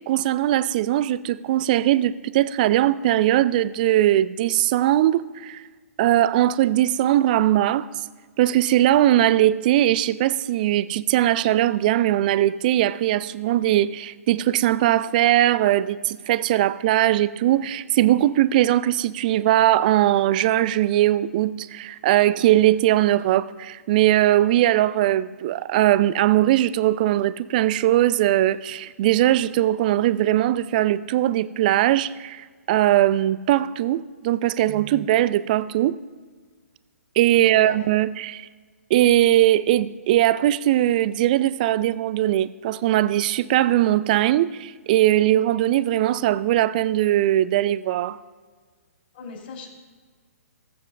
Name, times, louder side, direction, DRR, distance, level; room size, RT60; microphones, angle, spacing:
voice 1, 0.1-5.6 6.0-7.9 8.4-36.0 37.2-38.5 38.9-48.2, right 13 dB, 35° right, 0.4 m, -20 dB
voice 2, 49.1-49.7, left 4 dB, 45° left, 3.3 m, -38 dB
19.5 x 7.5 x 2.4 m
figure-of-eight pair, 125°, 8 cm